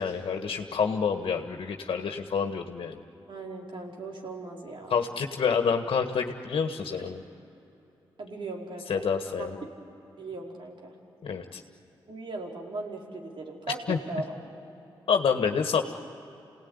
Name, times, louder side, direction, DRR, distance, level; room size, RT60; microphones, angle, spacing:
voice 1, 0.0-3.0 4.9-7.2 8.9-9.6 11.2-11.6 13.9-14.0 15.1-15.8, left 6 dB, 70° left, 5 dB, 1.6 m, -28 dB
voice 2, 3.3-5.0 5.6-5.8 7.0-7.1 8.2-8.9 9.3-9.7 10.2-10.9 12.1-14.4, right 2 dB, 60° right, -1 dB, 4.7 m, -38 dB
28.5 x 18.5 x 9.8 m, 3.0 s
supercardioid pair, 50°, 9 cm